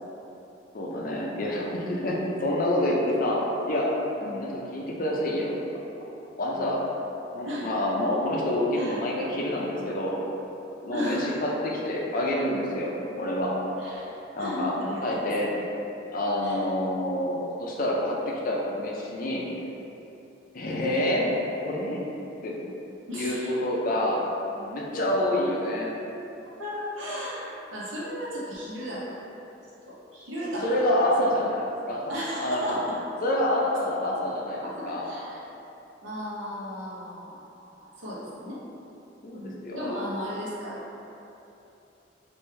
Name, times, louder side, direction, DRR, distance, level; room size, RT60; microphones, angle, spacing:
voice 1, 0.7-3.4 3.7-3.9 4.3-5.5 6.4-6.8 7.3-10.2 10.8-13.6 14.4-14.8 15.0-15.5 16.1-19.5 20.5-21.4 21.6-22.0 22.4-22.6 23.1-24.2 24.6-25.9 30.6-32.0 32.4-32.8 33.2-35.1 39.2-40.0, left 1 dB, 50° left, -3 dB, 0.5 m, -27 dB
voice 2, 10.9-11.4 13.8-14.1 14.4-15.0 16.4-16.6 23.1-23.5 26.6-29.2 29.9-30.8 32.1-32.8 34.1-34.2 34.6-35.4 36.0-38.6 39.3-40.8, equal, 85° right, -7 dB, 0.9 m, -35 dB
3.2 x 2.6 x 3.2 m, 2.9 s
head